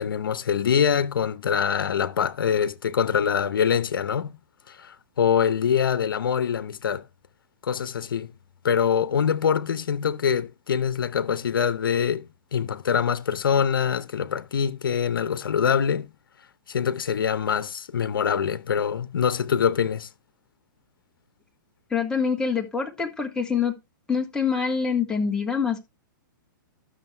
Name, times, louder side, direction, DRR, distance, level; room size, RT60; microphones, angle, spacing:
voice 1, 0.0-4.4 4.7-7.0 7.6-8.3 8.6-16.1 16.7-20.1, left 7 dB, 85° left, 0.8 m, -24 dB
voice 2, 21.9-23.8 24.1-25.8, left 6 dB, 5° left, 1.9 m, -25 dB
13.0 x 6.4 x 3.3 m
hypercardioid pair, 140°, 11 cm